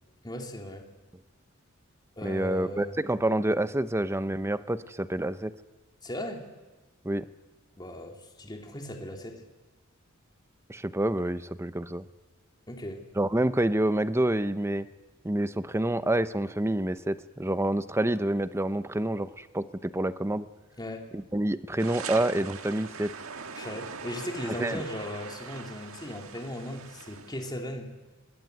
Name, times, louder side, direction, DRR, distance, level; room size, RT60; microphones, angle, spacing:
voice 1, 0.2-0.8 2.2-3.0 6.0-6.5 7.8-9.4 12.7-13.0 20.8-21.1 23.5-27.9, left 1 dB, 20° left, 2 dB, 2.8 m, -37 dB
voice 2, 2.2-5.5 7.0-7.3 10.7-12.0 13.2-14.9 15.2-20.5 21.1-23.1 24.4-24.8, right 1 dB, 15° right, 13 dB, 0.8 m, -28 dB
sound 1, 21.8-27.5, right 5 dB, 80° right, 1.6 m, -41 dB
25.5 x 20.0 x 9.3 m, 1.2 s
head